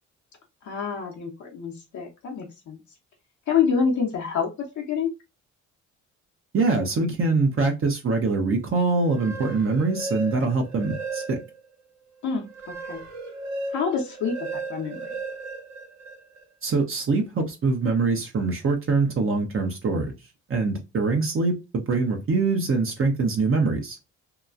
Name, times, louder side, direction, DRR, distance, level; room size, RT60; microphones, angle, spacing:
voice 1, 0.6-2.8 3.5-5.1 12.2-13.0 13.7-15.2, left 6 dB, 70° left, 0.9 m, -27 dB
voice 2, 6.5-11.4 16.6-20.1 20.5-24.0, right 3 dB, 45° right, 0.8 m, -24 dB
sound 1, 9.0-11.7 12.1-16.4, right 3 dB, 60° right, 1.2 m, -35 dB
2.9 x 2.3 x 2.4 m
cardioid pair, 90°, 30 cm